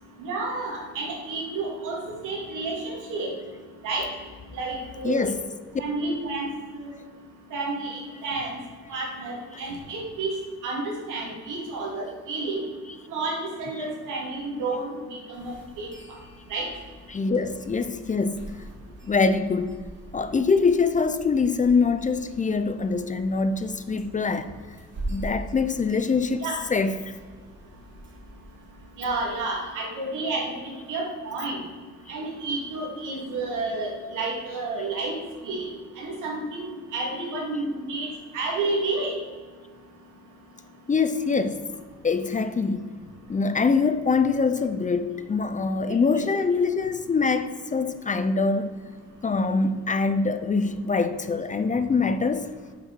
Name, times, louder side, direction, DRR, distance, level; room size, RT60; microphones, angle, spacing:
voice 1, 0.2-3.3 3.8-4.1 4.5-5.3 5.8-6.5 6.8-7.0 7.5-8.6 8.9-10.3 10.6-12.6 13.1-15.9 16.5-16.7 26.4-26.6 29.0-31.6 32.1-35.1 35.4-35.7 36.0-38.1 38.3-39.1 46.2-46.4, right 3 dB, 90° right, 2.4 m, -30 dB
voice 2, 5.0-5.5 12.8-12.9 13.7-13.8 17.1-18.4 19.1-19.7 20.1-24.5 25.1-27.0 40.9-41.6 42.0-42.9 43.3-48.8 49.2-52.5, left 4 dB, 25° left, 0.5 m, -24 dB
sound 1, 15.3-29.4, right 1 dB, 40° right, 2.3 m, -43 dB
6.1 x 5.5 x 6.1 m
cardioid pair, 90°, 30 cm